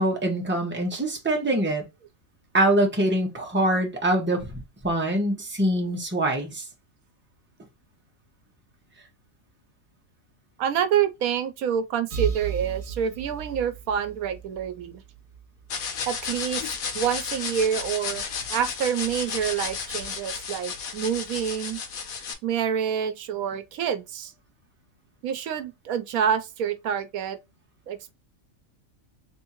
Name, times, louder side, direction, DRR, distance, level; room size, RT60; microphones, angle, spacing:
voice 1, 0.0-1.8 2.5-6.6, right 1 dB, 10° right, 1.0 m, -24 dB
voice 2, 10.6-15.0 16.1-18.2 18.5-21.8 22.4-24.3 25.2-27.4 27.9-28.1, right 8 dB, 80° right, 1.1 m, -27 dB
sound 1, 12.1-15.8, right 7 dB, 40° right, 1.1 m, -35 dB
sound 2, 15.7-22.3, left 6 dB, 80° left, 1.3 m, -33 dB
3.6 x 3.2 x 2.9 m
omnidirectional pair, 1.5 m